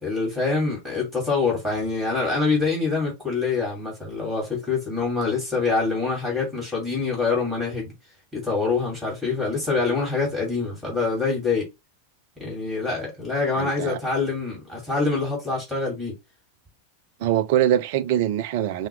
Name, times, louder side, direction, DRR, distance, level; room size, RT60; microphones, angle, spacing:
voice 1, 0.0-7.9 8.3-11.7 12.4-16.1, left 4 dB, 5° right, 2.8 m, -25 dB
voice 2, 13.5-14.0 17.2-18.9, right 11 dB, 50° right, 0.4 m, -23 dB
5.7 x 2.3 x 3.2 m
figure-of-eight pair, 90°, 0 cm